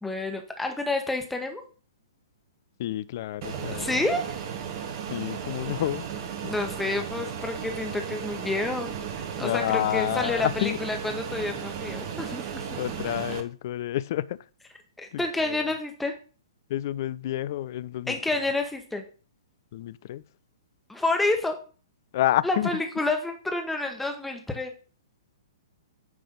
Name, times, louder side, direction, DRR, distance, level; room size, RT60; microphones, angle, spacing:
voice 1, 0.0-1.6 3.7-4.4 6.5-12.6 15.0-16.1 18.1-19.0 20.9-21.6 22.4-24.7, left 2 dB, 5° left, 1.1 m, -29 dB
voice 2, 2.8-4.1 5.1-6.1 6.4-6.5 9.4-10.8 12.8-14.4 15.1-15.6 16.7-18.2 19.7-20.2 22.1-22.8, left 13 dB, 45° left, 0.3 m, -29 dB
Fixed-wing aircraft airplane, 3.4-13.4, right 7 dB, 40° right, 1.0 m, -35 dB
9.4 x 3.4 x 5.3 m
figure-of-eight pair, 115°, 3 cm